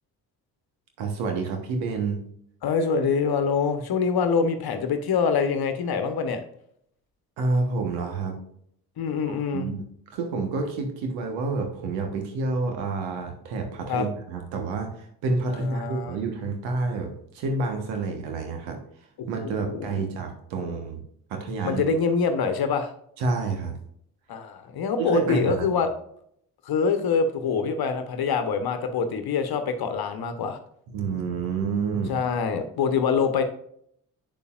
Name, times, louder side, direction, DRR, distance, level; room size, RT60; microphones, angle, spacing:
voice 1, 1.0-2.2 7.4-8.4 9.3-9.8 10.1-18.8 19.3-21.0 21.3-21.8 23.2-23.8 25.0-25.8 30.9-32.2, right 3 dB, 80° right, 4 dB, 1.4 m, -29 dB
voice 2, 2.6-6.4 9.0-9.7 13.9-14.1 15.7-16.1 19.2-20.0 20.6-20.7 21.6-22.9 24.3-25.9 26.6-30.6 32.1-33.4, left 5 dB, 55° left, 8 dB, 1.1 m, -25 dB
8.1 x 6.8 x 2.5 m, 0.68 s
hypercardioid pair, 55°, 45 cm